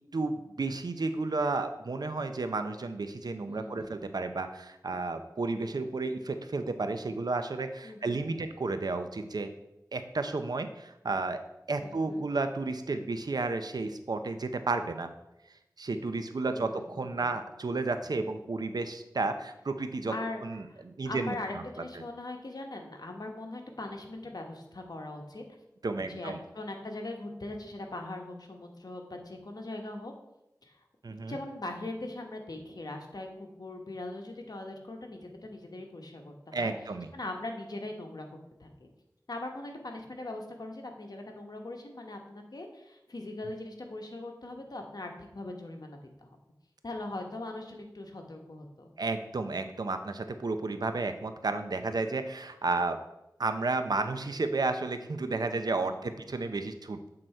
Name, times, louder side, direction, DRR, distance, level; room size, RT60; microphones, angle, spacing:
voice 1, 0.1-9.5 9.9-11.4 11.7-15.1 15.8-20.1 20.4-21.6 25.8-26.4 31.0-31.4 36.5-37.1 49.0-53.0 53.4-57.0, right 3 dB, 70° right, 8 dB, 0.6 m, -32 dB
voice 2, 3.5-4.0 7.8-8.4 11.8-12.3 16.5-17.4 20.1-25.4 26.1-30.1 30.6-30.7 31.3-36.7 37.1-38.3 38.6-38.9 39.3-46.4 46.8-48.9 55.5-56.0, left 2 dB, 70° left, 3 dB, 1.1 m, -41 dB
7.7 x 3.9 x 4.4 m, 0.89 s
wide cardioid pair, 55°, 7 cm